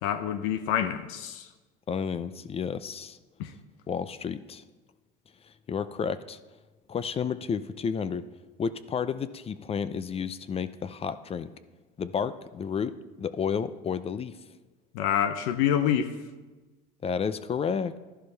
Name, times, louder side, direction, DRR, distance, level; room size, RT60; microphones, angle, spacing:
voice 1, 0.0-1.5 3.4-3.5 14.9-16.1, left 9 dB, 75° left, 9 dB, 0.7 m, -27 dB
voice 2, 1.9-3.2 3.9-4.6 5.7-6.4 6.9-8.2 8.6-11.5 12.0-14.3 17.0-18.0, left 6 dB, 30° left, 14 dB, 0.5 m, -31 dB
12.5 x 11.0 x 3.3 m, 1.2 s
supercardioid pair, 95°, 21 cm